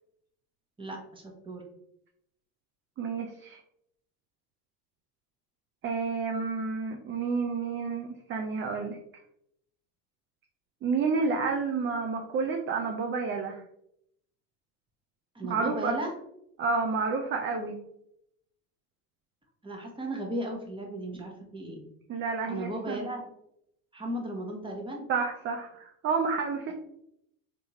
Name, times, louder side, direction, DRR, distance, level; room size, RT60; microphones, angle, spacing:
voice 1, 0.8-1.6 15.3-16.1 19.6-21.8 22.5-23.3 23.9-25.1, right 1 dB, 10° right, 0 dB, 1.0 m, -35 dB
voice 2, 3.0-3.6 5.8-9.0 10.8-13.6 15.4-15.9 16.6-17.8 22.1-23.0 25.1-26.7, right 4 dB, 25° right, 2 dB, 0.4 m, -30 dB
3.4 x 2.9 x 2.9 m, 0.75 s
hypercardioid pair, 80°, 50 cm